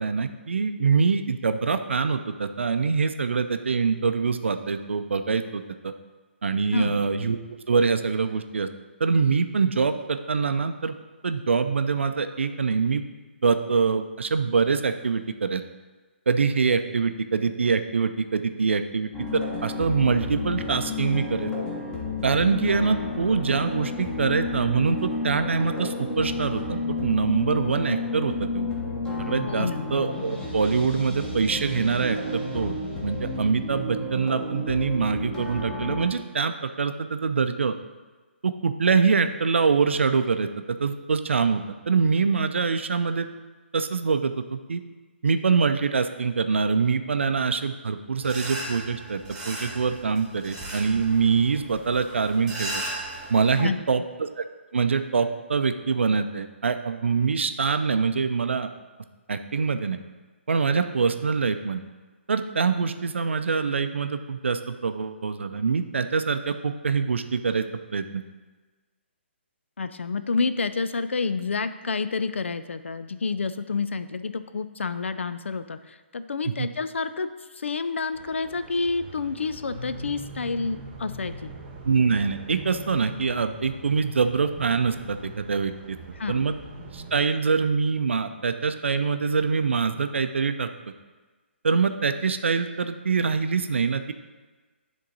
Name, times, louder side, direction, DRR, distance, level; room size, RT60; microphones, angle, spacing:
voice 1, 0.0-5.9 6.4-7.4 7.7-8.7 9.0-10.9 11.2-13.0 13.4-15.6 16.3-19.1 19.6-21.5 22.2-28.7 29.2-32.7 33.0-37.7 38.4-43.3 43.7-44.8 45.2-49.2 49.5-52.8 53.3-54.4 54.7-58.7 59.3-60.0 60.5-61.8 62.3-67.6 67.9-68.2 76.5-76.7 81.8-86.0 86.3-86.5 86.9-90.7 91.6-94.1, right 5 dB, 70° right, 9 dB, 0.5 m, -24 dB
voice 2, 6.7-7.0 29.5-29.9 53.6-53.8 69.8-81.5 86.2-86.5, left 4 dB, 75° left, 12 dB, 0.4 m, -29 dB
sound 1, 19.1-36.1, left 2 dB, 10° left, 1.3 m, -31 dB
sound 2, 48.2-53.6, right 1 dB, 10° right, 1.5 m, -36 dB
sound 3, 78.1-87.2, right 2 dB, 30° right, 1.0 m, -42 dB
9.9 x 3.7 x 4.0 m, 1.3 s
figure-of-eight pair, 140°, 7 cm